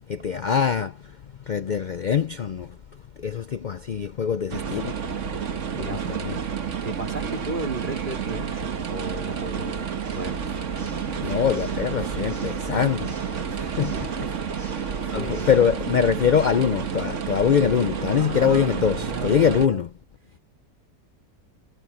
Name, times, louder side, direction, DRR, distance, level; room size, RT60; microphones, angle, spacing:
voice 1, 0.1-0.9 1.5-2.7 3.2-4.9 5.8-6.4 11.2-13.1 13.8-13.9 15.1-19.9, left 7 dB, 65° left, 0.4 m, -23 dB
sound 1, 4.5-19.7, right 7 dB, 55° right, 1.5 m, -30 dB
voice 2, 6.8-10.4 13.9-14.1 15.1-15.6 18.2-19.8, right 2 dB, 35° right, 2.8 m, -35 dB
Water / Mechanisms, 10.0-16.0, left 1 dB, 30° left, 6.7 m, -47 dB
omnidirectional pair, 1.6 m